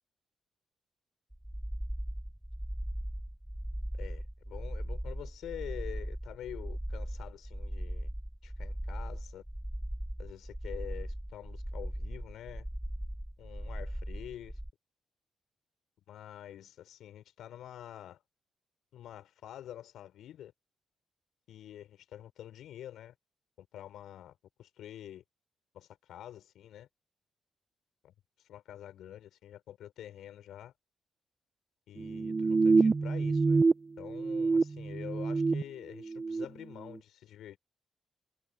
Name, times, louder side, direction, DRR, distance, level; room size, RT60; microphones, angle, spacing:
sound 1, 1.3-14.7, equal, 5° right, 1.7 m, -38 dB
voice 1, 3.9-8.1 8.4-9.4 10.2-12.7 13.4-14.6 16.1-18.2 18.9-20.5 21.5-23.1 23.6-25.2 25.7-26.9 28.0-28.1 28.5-30.7 31.9-33.6 34.0-37.6, left 11 dB, 75° left, 6.1 m, -47 dB
sound 2, 32.0-33.7 34.0-35.6 36.0-36.4, right 4 dB, 40° right, 1.0 m, -27 dB
hypercardioid pair, 45°, 0 cm